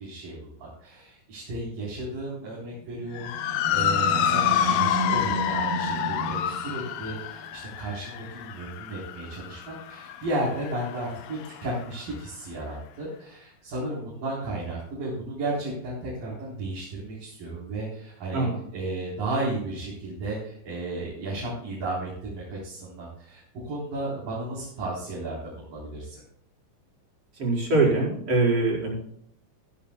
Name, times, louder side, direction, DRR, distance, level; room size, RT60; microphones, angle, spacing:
voice 1, 0.0-18.5 18.7-26.2, right 2 dB, 60° right, -6 dB, 5.5 m, -34 dB
Animal, 2.8-7.4, right 4 dB, 85° right, 3.7 m, -33 dB
Motor vehicle (road) / Siren, 3.2-11.7, left 10 dB, 75° left, 1.7 m, -28 dB
voice 2, 27.4-28.9, right 3 dB, 40° right, -4 dB, 5.4 m, -23 dB
15.0 x 15.0 x 2.2 m, 0.70 s
omnidirectional pair, 4.4 m